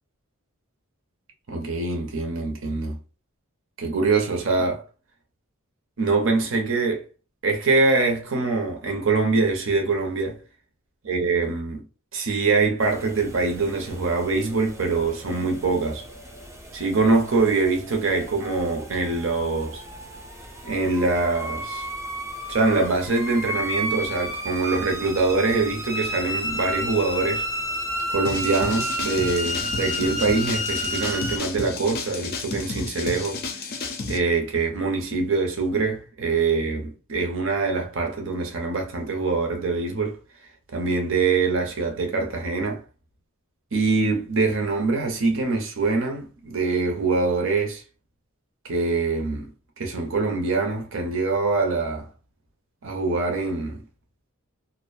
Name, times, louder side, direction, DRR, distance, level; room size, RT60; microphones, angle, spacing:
voice 1, 1.5-3.0 3.8-4.9 6.0-7.0 7.4-10.4 11.0-11.8 12.1-16.1 16.7-19.8 20.6-21.9 22.5-27.5 28.1-33.4 34.1-40.2 40.7-42.8 43.7-47.8 48.6-49.5 49.8-52.1 52.8-53.8, right 3 dB, 65° right, 0.7 m, -24 dB
sound 1, 12.8-31.4, equal, 15° right, 0.4 m, -32 dB
sound 2, 28.2-34.2, left 3 dB, 45° left, 0.4 m, -32 dB
2.4 x 2.1 x 2.4 m
head